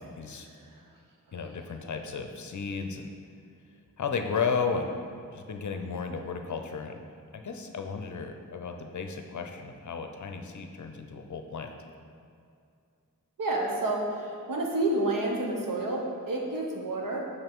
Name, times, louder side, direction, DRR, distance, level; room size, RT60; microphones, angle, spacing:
voice 1, 0.2-0.5 1.3-3.1 4.0-5.0 5.3-7.0 7.3-11.7, left 5 dB, 60° left, 5 dB, 0.6 m, -34 dB
voice 2, 13.4-17.3, right 2 dB, 75° right, -1 dB, 1.1 m, -30 dB
6.1 x 5.7 x 3.6 m, 2.4 s
wide cardioid pair, 115°, 33 cm